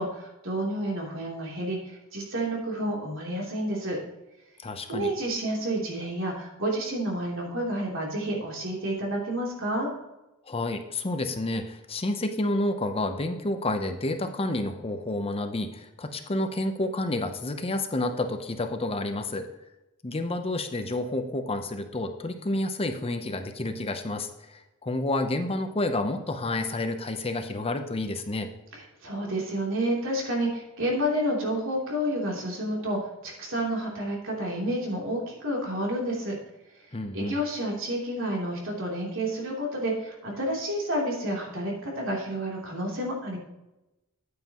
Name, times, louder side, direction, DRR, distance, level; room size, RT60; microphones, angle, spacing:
voice 1, 0.0-4.0 4.9-9.9 29.0-36.3 37.1-43.4, right 1 dB, 65° right, -2 dB, 3.2 m, -30 dB
voice 2, 4.6-5.1 10.5-19.5 20.0-28.5 36.9-37.4, left 2 dB, 25° left, 7 dB, 0.7 m, -30 dB
9.7 x 9.0 x 3.0 m, 0.95 s
head